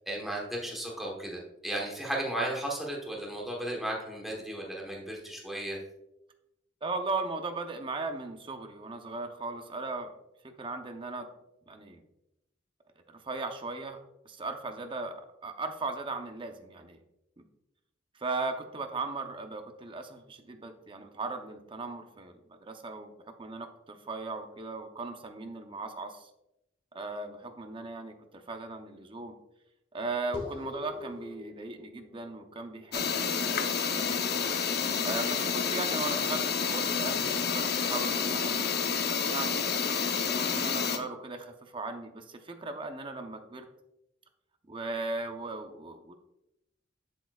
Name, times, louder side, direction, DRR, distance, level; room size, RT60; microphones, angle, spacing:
voice 1, 0.1-5.8, right 1 dB, ahead, -3 dB, 1.1 m, -35 dB
voice 2, 6.8-10.1 10.6-11.3 11.7-12.0 13.1-15.1 15.4-17.0 17.4-17.5 18.1-23.1 23.4-26.3 26.9-29.4 29.9-34.3 35.0-38.9 39.2-39.7 40.2-43.7 44.7-46.1, right 3 dB, 30° right, 6 dB, 0.7 m, -38 dB
sound 1, 30.3-35.1, left 3 dB, 30° left, 1.4 m, -45 dB
sound 2, 32.9-41.0, left 6 dB, 60° left, 0.7 m, -29 dB
7.6 x 7.3 x 2.3 m, 0.87 s
head